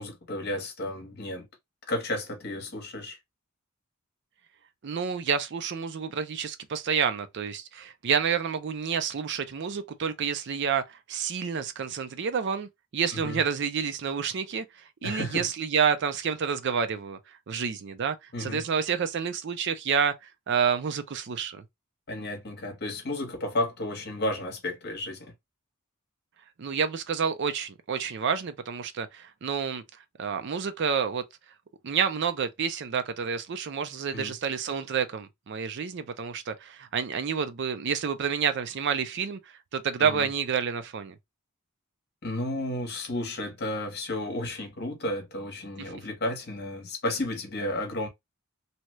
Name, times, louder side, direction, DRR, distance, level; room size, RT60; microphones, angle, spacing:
voice 1, 0.0-1.5 1.9-3.2 13.1-13.4 15.0-15.5 18.3-18.6 22.1-25.3 34.1-34.4 40.0-40.3 42.2-48.1, left 1 dB, 45° left, 1.0 m, -32 dB
voice 2, 4.8-14.6 15.0-17.2 17.5-20.1 20.5-21.6 26.6-29.8 30.2-31.2 31.8-39.4 39.7-41.2, right 6 dB, 50° right, 0.4 m, -29 dB
2.8 x 2.3 x 3.0 m
head